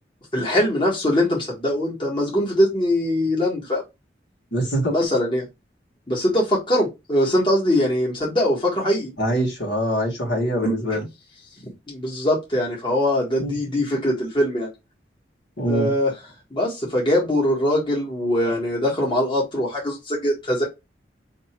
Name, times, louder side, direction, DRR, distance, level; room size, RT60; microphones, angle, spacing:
voice 1, 0.3-3.8 4.9-5.4 6.1-9.1 10.6-10.7 11.9-14.7 15.7-16.1 16.5-20.6, left 1 dB, 25° left, 1.5 m, -22 dB
voice 2, 4.5-4.9 9.2-11.0 13.4-13.6 15.6-15.9, equal, 80° left, 1.8 m, -24 dB
3.0 x 2.9 x 4.4 m
head